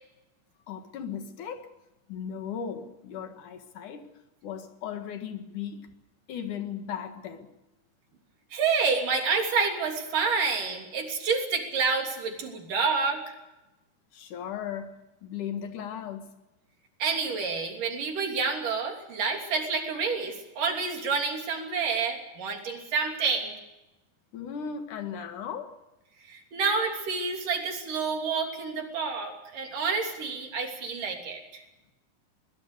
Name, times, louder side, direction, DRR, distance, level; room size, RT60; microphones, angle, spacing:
voice 1, 0.7-1.7 2.1-4.1 4.4-5.9 6.3-7.5 14.1-16.3 24.3-25.8, left 8 dB, 75° left, 3.2 m, -37 dB
voice 2, 8.5-13.2 17.0-23.6 26.3-31.6, right 5 dB, 85° right, 4.7 m, -28 dB
22.0 x 20.5 x 6.7 m
omnidirectional pair, 3.7 m